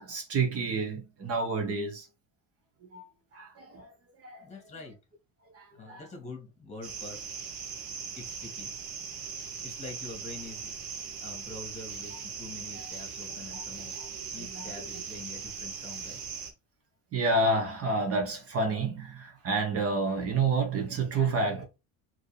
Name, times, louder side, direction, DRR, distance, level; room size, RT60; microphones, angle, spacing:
voice 1, 0.0-2.1 2.9-3.1 3.3-3.9 4.2-4.5 5.5-6.1 13.5-13.6 14.0-14.1 14.4-15.0 17.1-21.6, right 3 dB, 40° right, 1.1 m, -29 dB
voice 2, 4.4-5.0 5.8-7.2 8.2-8.7 9.6-10.7 11.2-13.9 14.3-16.2, left 3 dB, 20° left, 1.9 m, -45 dB
sound 1, 6.8-16.5, right 6 dB, 85° right, 1.2 m, -40 dB
4.5 x 3.1 x 3.2 m
cardioid pair, 145°, 34 cm